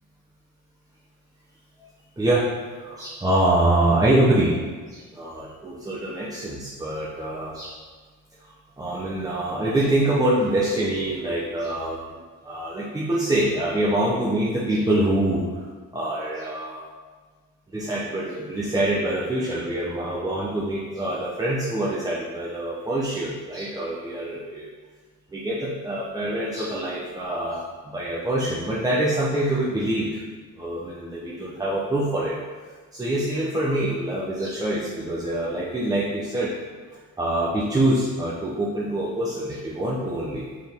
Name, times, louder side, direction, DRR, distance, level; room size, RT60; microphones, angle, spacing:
voice 1, 2.7-4.5 4.9-7.7 8.4-12.0 12.4-15.7 15.9-16.8 17.7-24.7 25.3-30.2 30.6-32.3 32.9-36.5 36.9-40.4, right 1 dB, 10° right, -7 dB, 0.7 m, -25 dB
6.0 x 4.7 x 3.5 m, 1.5 s
cardioid pair, 135°, 32 cm